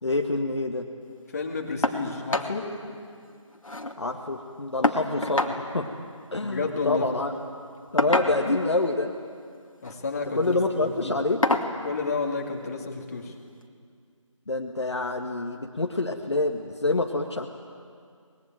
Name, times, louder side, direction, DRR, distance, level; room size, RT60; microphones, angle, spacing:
voice 1, 0.0-0.9 4.0-5.9 6.3-7.3 7.9-9.1 10.4-11.4 14.5-17.5, left 2 dB, 55° left, 3 dB, 1.8 m, -27 dB
voice 2, 1.3-2.7 6.4-7.1 9.8-11.2 11.8-13.3, left 4 dB, 30° left, 1 dB, 2.5 m, -31 dB
sound 1, 1.8-2.0 2.3-2.5 2.9-3.0 3.3-4.0 4.8-5.6 6.8-7.0 8.0-8.6 9.7-10.0 10.5-10.6 11.4-11.7 13.0-13.1 13.6-13.7, left 2 dB, 80° left, 2.5 m, -26 dB
24.0 x 21.5 x 9.2 m, 2.2 s
figure-of-eight pair, 165°, 17 cm